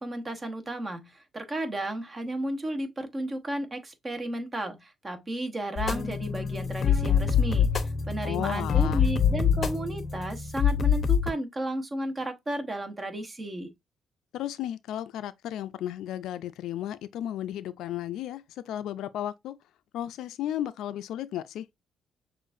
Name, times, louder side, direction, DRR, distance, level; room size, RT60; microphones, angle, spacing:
voice 1, 0.0-13.7, right 1 dB, 30° right, 1.0 m, -33 dB
sound 1, 5.8-11.3, left 7 dB, 45° left, 0.6 m, -25 dB
voice 2, 8.2-9.1 14.3-19.6 19.9-21.7, left 11 dB, 85° left, 0.4 m, -34 dB
6.4 x 2.5 x 2.5 m
cardioid pair, 90°, 0 cm